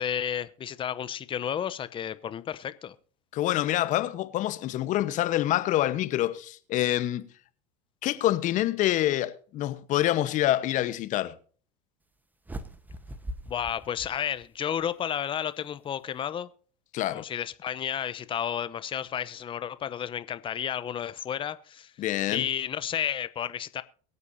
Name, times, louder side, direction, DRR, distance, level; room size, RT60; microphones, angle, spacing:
voice 1, 0.0-2.9 13.5-16.5 17.1-21.9 22.3-23.8, left 9 dB, 30° left, 0.8 m, -32 dB
voice 2, 3.3-7.3 8.0-11.4 16.9-17.2 22.0-22.5, left 14 dB, 45° left, 1.2 m, -26 dB
sound 1, 12.4-14.8, right 1 dB, 10° right, 1.2 m, -41 dB
23.0 x 8.2 x 2.8 m
hypercardioid pair, 90°, 17 cm